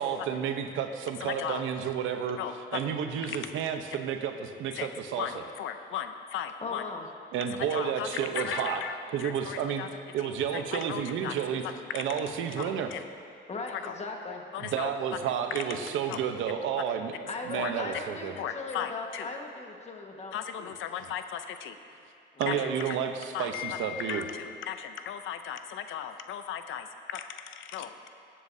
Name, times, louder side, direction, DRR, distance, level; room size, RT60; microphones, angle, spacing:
voice 1, 0.0-2.4 2.7-5.3 7.3-8.8 9.1-9.9 10.1-11.6 11.9-12.9 14.6-17.1 17.5-18.3 22.4-24.2, right 8 dB, 90° right, 6 dB, 0.8 m, -31 dB
voice 2, 1.2-1.6 2.4-3.0 3.3-3.4 4.7-4.9 5.2-6.8 7.7-9.9 10.2-11.3 11.8-12.0 12.6-13.0 13.7-13.9 14.5-14.9 15.2-15.6 16.1-16.2 17.5-17.7 18.4-19.3 20.3-21.8 22.5-23.0 23.3-28.1, left 9 dB, 85° left, 8 dB, 0.6 m, -37 dB
voice 3, 6.6-7.1 9.6-9.7 13.5-14.4 17.3-20.7 22.3-22.8, left 3 dB, 35° left, 2 dB, 1.4 m, -39 dB
20.5 x 7.7 x 2.7 m, 2.4 s
cardioid pair, 90°, 20 cm